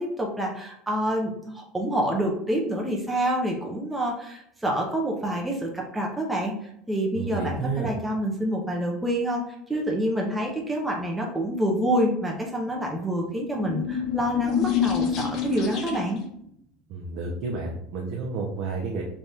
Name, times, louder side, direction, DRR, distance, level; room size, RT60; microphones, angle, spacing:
voice 1, 0.0-6.5 6.9-9.4 9.7-16.2, right 1 dB, 5° right, -1 dB, 0.6 m, -27 dB
voice 2, 7.1-7.9 16.9-19.0, right 4 dB, 50° right, -1 dB, 0.6 m, -30 dB
sound 1, 13.3-16.3, left 8 dB, 45° left, 0.7 m, -27 dB
3.4 x 2.4 x 4.1 m, 0.71 s
cardioid pair, 150°, 0 cm